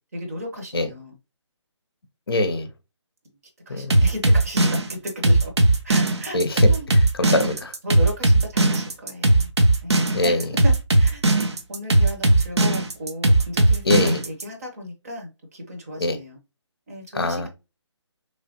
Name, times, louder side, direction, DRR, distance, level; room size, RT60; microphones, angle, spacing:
voice 1, 0.1-1.1 3.7-5.5 5.8-6.9 7.2-7.4 7.8-9.5 9.8-11.3 11.7-16.4 16.9-17.5, equal, 30° right, 0.8 m, -35 dB
voice 2, 2.3-2.7 3.7-3.9 6.3-6.6 6.9-7.7 10.1-10.4 13.9-14.2 16.0-16.2 17.1-17.5, left 2 dB, 55° left, 0.6 m, -23 dB
sound 1, 3.9-14.4, right 2 dB, 65° right, 0.6 m, -18 dB
3.1 x 2.4 x 2.6 m
figure-of-eight pair, 150°, 15 cm